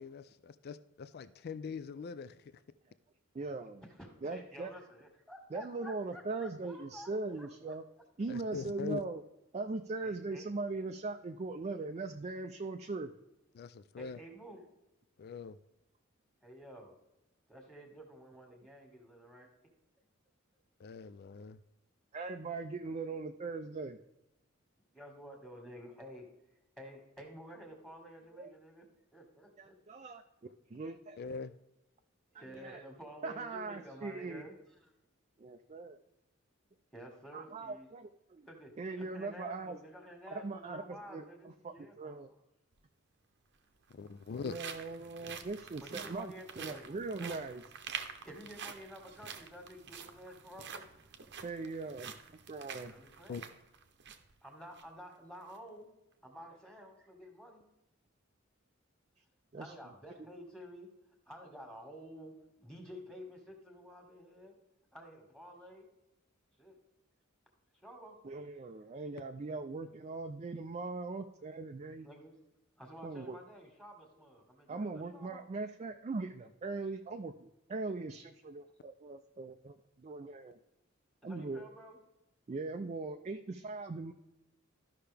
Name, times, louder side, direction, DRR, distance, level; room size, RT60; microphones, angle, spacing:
voice 1, 0.0-2.5 8.3-9.0 13.5-14.2 15.2-15.6 20.8-21.6 31.2-31.5 43.9-44.6 53.3-53.4, left 5 dB, 50° left, 14 dB, 0.4 m, -42 dB
voice 2, 3.3-3.8 4.2-4.7 5.5-7.8 8.2-9.2 9.5-13.1 22.1-24.0 28.3-28.5 29.6-30.2 30.7-31.2 32.5-32.8 33.2-34.4 35.4-36.0 37.3-38.5 38.8-39.8 40.3-42.3 44.4-47.6 51.4-52.1 52.5-52.9 59.5-59.7 60.2-60.3 68.2-72.1 73.0-73.4 74.7-80.6 81.2-81.6 82.5-84.1, right 3 dB, 35° right, 6 dB, 0.4 m, -40 dB
voice 3, 3.9-7.8 10.0-10.4 14.0-14.6 16.4-16.9 17.5-19.5 24.9-26.3 26.8-28.8 29.1-30.0 32.3-34.9 36.9-37.9 38.4-38.7 39.0-42.3 45.2-45.3 45.8-46.8 47.2-47.4 48.3-50.9 52.8-53.5 54.4-55.9 56.2-57.6 59.6-60.9 61.3-64.5 64.9-65.9 66.6-66.8 67.8-68.2 72.0-72.3 72.8-75.4 81.2-82.0, equal, 5° left, 1 dB, 1.8 m, -51 dB
sound 1, 42.7-42.8 43.8-54.3 54.7-54.8 55.3-55.6, right 7 dB, 60° right, 0.8 m, -47 dB
13.5 x 5.7 x 3.4 m, 0.93 s
head